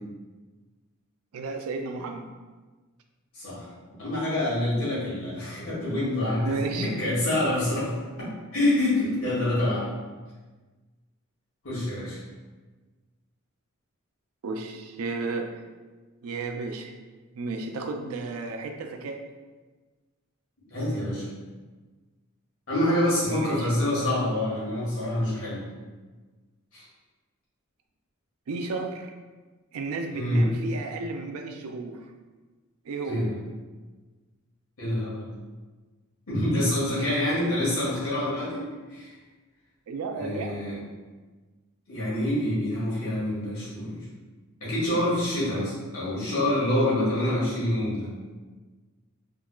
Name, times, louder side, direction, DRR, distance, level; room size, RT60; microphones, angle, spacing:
voice 1, 1.3-2.2 6.4-6.9 14.4-15.5 16.2-16.9 17.3-19.2 23.3-23.7 28.5-29.1 29.7-32.0 32.8-33.3 37.0-37.1 39.9-40.6, right 3 dB, 85° right, 4 dB, 0.4 m, -33 dB
voice 2, 3.3-3.7 4.0-7.9 8.5-9.9 11.6-12.2 20.7-21.3 22.7-25.6 26.7-26.8 30.1-30.4 33.0-33.3 34.8-35.3 36.3-39.1 40.2-40.7 41.9-44.0 44.6-48.1, left 1 dB, 70° left, -9 dB, 1.5 m, -26 dB
3.6 x 2.8 x 2.3 m, 1.3 s
head